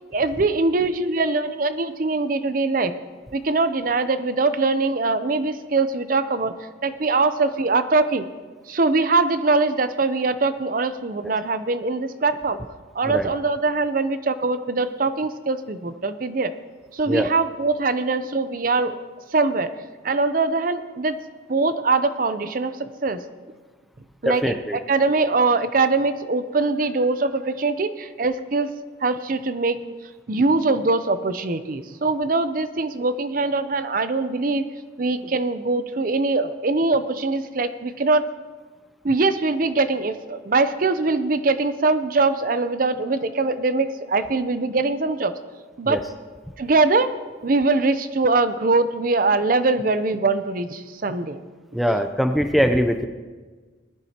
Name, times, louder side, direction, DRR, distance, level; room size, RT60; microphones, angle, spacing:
voice 1, 0.1-2.9 3.3-6.5 6.8-8.3 8.7-12.7 12.9-16.5 16.9-19.0 19.3-19.7 20.0-21.2 21.5-22.7 23.0-23.2 24.2-24.5 24.9-28.7 29.0-29.8 30.3-34.7 35.0-38.3 39.0-45.3 45.8-46.0 46.6-47.1 47.4-51.4, right 3 dB, 45° right, 11 dB, 0.6 m, -22 dB
voice 2, 24.2-24.8 45.8-46.0 51.7-53.1, equal, ahead, 6 dB, 0.5 m, -22 dB
20.0 x 11.0 x 2.9 m, 1.4 s
head